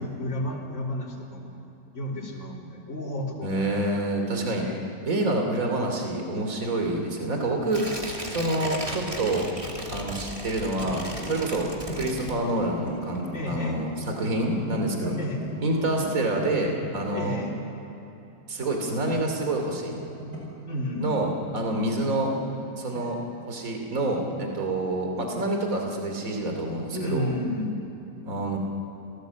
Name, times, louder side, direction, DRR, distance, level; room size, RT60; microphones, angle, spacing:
voice 1, 0.0-1.6 1.9-4.1 4.6-4.9 13.3-13.8 15.2-15.4 17.1-17.5 20.7-21.1 26.9-27.8, left 1 dB, 45° left, -3 dB, 4.0 m, -32 dB
voice 2, 3.4-4.7 5.0-7.8 8.3-9.5 9.9-13.9 14.2-15.1 15.6-17.4 18.5-20.0 21.0-22.3 22.8-23.2 23.5-27.3 28.2-28.6, right 2 dB, 50° right, 2 dB, 3.2 m, -27 dB
sound 1, 6.3-8.8 9.1-10.2 10.5-17.3 18.4-19.5 19.8-20.7 21.8-23.3 24.2-24.4, equal, 90° right, 6.0 m, -39 dB
Tearing, 7.7-12.8 13.2-13.3, right 1 dB, 20° right, 2.7 m, -36 dB
28.5 x 18.5 x 8.1 m, 3.0 s
omnidirectional pair, 1.8 m